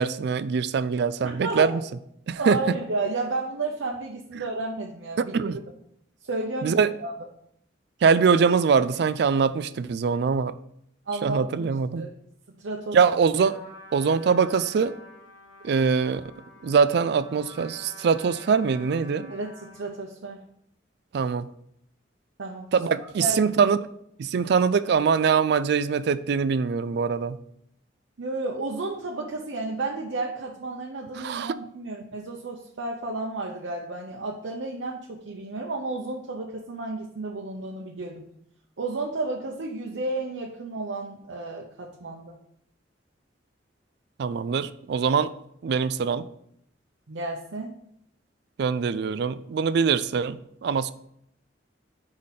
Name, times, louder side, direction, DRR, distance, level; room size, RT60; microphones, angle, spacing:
voice 1, 0.0-1.8 2.3-2.8 5.2-5.6 6.6-6.9 8.0-10.5 11.2-12.1 12.9-13.6 13.9-14.9 15.6-16.2 16.6-19.3 21.1-21.5 22.7-23.8 24.2-27.4 31.2-31.6 44.2-45.3 45.6-46.3 48.6-50.9, right 5 dB, 60° right, 15 dB, 0.3 m, -23 dB
voice 2, 1.2-1.7 2.4-5.3 6.2-7.1 11.1-11.7 12.0-12.1 12.6-13.0 19.3-20.4 22.4-23.4 28.2-38.2 38.8-42.3 47.1-47.8, right 2 dB, 85° right, -1 dB, 0.7 m, -32 dB
Trumpet, 13.4-20.0, equal, 80° left, 1.9 m, -48 dB
4.9 x 4.1 x 5.6 m, 0.71 s
head